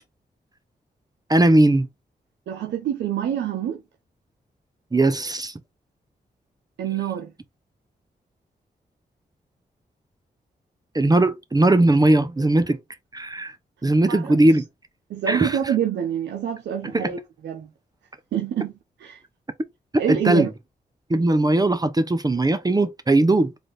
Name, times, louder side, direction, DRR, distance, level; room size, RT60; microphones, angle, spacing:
voice 1, 1.3-1.9 4.9-5.5 10.9-12.8 13.1-13.6 13.8-14.7 15.3-15.6 16.8-17.1 20.1-20.5 21.1-23.5, right 2 dB, 20° right, 0.6 m, -19 dB
voice 2, 2.5-3.8 6.8-7.3 14.0-14.4 15.1-17.2 17.4-17.7 18.3-18.7 19.0-19.2 20.0-20.5, right 9 dB, 90° right, 0.6 m, -26 dB
4.0 x 2.5 x 3.1 m
cardioid pair, 45°, 18 cm